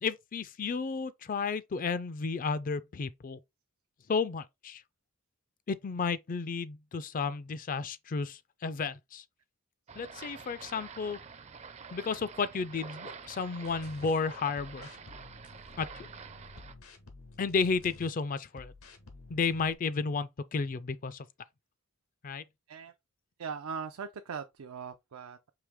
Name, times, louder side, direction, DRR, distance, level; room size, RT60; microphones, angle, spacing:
voice 1, 0.0-3.4 4.1-4.8 5.7-9.2 10.0-11.2 11.9-14.9 15.8-16.1 17.4-18.7 19.3-21.3 22.2-22.4, left 5 dB, 40° left, 0.4 m, -32 dB
sound 1, 9.9-16.7, right 5 dB, 30° right, 0.4 m, -48 dB
sound 2, 13.6-14.1 14.6-18.1 18.5-19.7, left 2 dB, 80° left, 1.1 m, -52 dB
voice 2, 23.4-25.5, right 6 dB, 90° right, 0.5 m, -40 dB
4.9 x 2.9 x 3.4 m
head